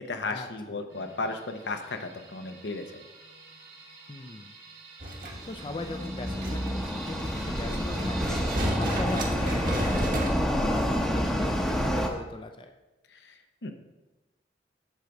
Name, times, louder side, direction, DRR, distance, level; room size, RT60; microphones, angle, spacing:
voice 1, 0.0-3.0 13.1-13.7, left 3 dB, 80° left, 6 dB, 0.8 m, -35 dB
sound 1, 0.9-9.0, right 4 dB, 90° right, 1.5 m, -47 dB
voice 2, 4.1-4.5 5.1-12.7, left 2 dB, 30° left, 6 dB, 0.4 m, -39 dB
sound 2, 5.0-10.3, right 1 dB, 50° right, 1.3 m, -33 dB
sound 3, 5.2-12.1, equal, 5° left, 0.7 m, -28 dB
8.1 x 3.9 x 5.9 m, 1.1 s
head